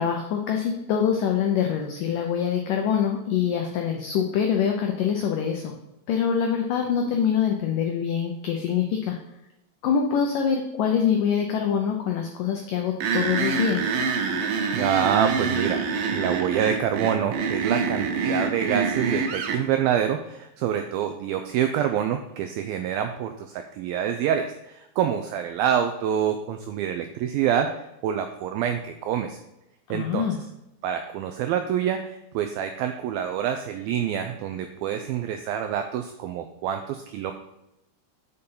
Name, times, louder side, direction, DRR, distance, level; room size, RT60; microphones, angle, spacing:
voice 1, 0.0-5.7 6.1-9.2 9.8-13.9 29.9-30.4, left 7 dB, 85° left, 2 dB, 1.9 m, -24 dB
sound 1, 13.0-19.6, right 5 dB, 70° right, 2.2 m, -26 dB
voice 2, 14.7-29.4 29.9-30.3 30.8-37.3, right 9 dB, 90° right, 6 dB, 2.1 m, -26 dB
6.9 x 6.7 x 5.5 m, 0.87 s
omnidirectional pair, 4.8 m